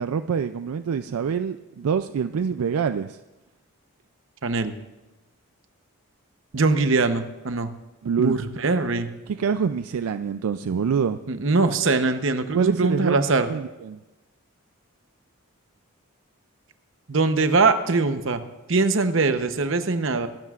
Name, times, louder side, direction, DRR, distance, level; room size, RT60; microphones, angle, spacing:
voice 1, 0.0-3.2 8.0-8.4 9.3-11.2 12.5-14.0, right 6 dB, 80° right, 10 dB, 0.4 m, -25 dB
voice 2, 4.4-4.7 6.5-7.7 8.2-9.1 11.3-13.5 17.1-18.4 18.7-20.3, right 3 dB, 60° right, 9 dB, 0.8 m, -22 dB
23.5 x 12.0 x 2.4 m, 1.1 s
head